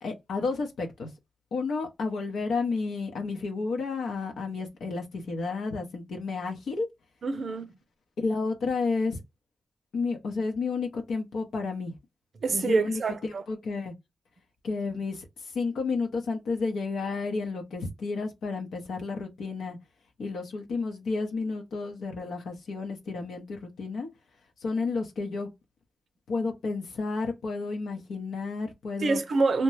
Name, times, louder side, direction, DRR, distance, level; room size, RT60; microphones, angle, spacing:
voice 1, 0.0-1.1 1.5-6.9 8.2-9.2 9.9-11.9 12.5-13.9 14.6-19.8 20.2-24.1 24.6-25.5 26.3-29.2, left 4 dB, 90° left, 0.7 m, -31 dB
voice 2, 7.2-7.7 12.4-13.4 29.0-29.6, right 3 dB, 65° right, 0.5 m, -26 dB
2.8 x 2.2 x 3.1 m
cardioid pair, 50°, 0 cm